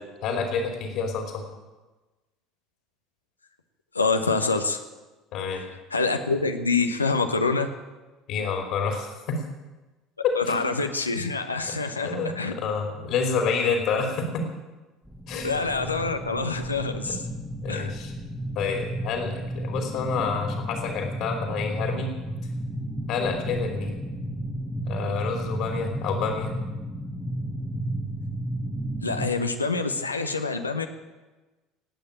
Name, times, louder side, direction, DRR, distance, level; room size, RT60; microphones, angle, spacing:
voice 1, 0.2-1.4 5.3-5.6 8.3-9.4 10.2-10.7 12.0-14.4 15.3-15.6 17.0-17.1 17.6-18.1 18.5-22.1 23.1-24.0 24.9-26.5, left 5 dB, 55° left, 3 dB, 2.7 m, -28 dB
voice 2, 3.9-4.8 5.9-7.7 10.3-12.5 15.4-17.2 17.7-17.9 29.0-30.9, left 4 dB, 85° left, 6 dB, 1.0 m, -26 dB
sound 1, 15.1-29.3, right 1 dB, 5° left, 1.7 m, -33 dB
18.5 x 8.7 x 8.9 m, 1.2 s
figure-of-eight pair, 65°, 0 cm